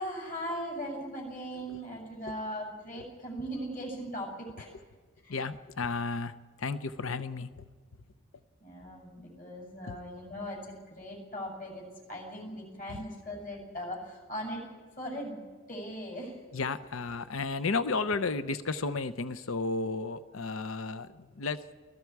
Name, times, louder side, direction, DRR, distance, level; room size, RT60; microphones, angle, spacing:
voice 1, 0.0-4.7 5.2-5.4 8.6-11.8 12.1-14.6 15.0-15.4 15.7-16.3, equal, 40° left, -2 dB, 7.1 m, -39 dB
voice 2, 5.3-7.7 9.8-10.0 12.9-13.0 16.5-21.8, left 4 dB, 80° left, 12 dB, 0.7 m, -33 dB
29.0 x 20.5 x 4.7 m, 1.5 s
head